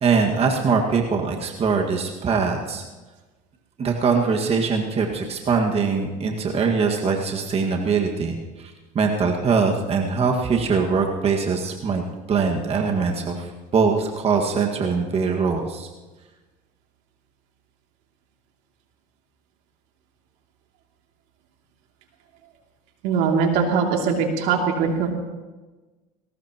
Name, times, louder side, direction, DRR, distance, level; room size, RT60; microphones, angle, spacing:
voice 1, 0.0-2.8 3.8-12.0 12.3-15.9, right 5 dB, 35° right, 1 dB, 1.9 m, -22 dB
voice 2, 23.0-25.1, right 5 dB, 70° right, 1 dB, 2.8 m, -21 dB
20.5 x 18.5 x 3.0 m, 1.2 s
supercardioid pair, 100°, 18 cm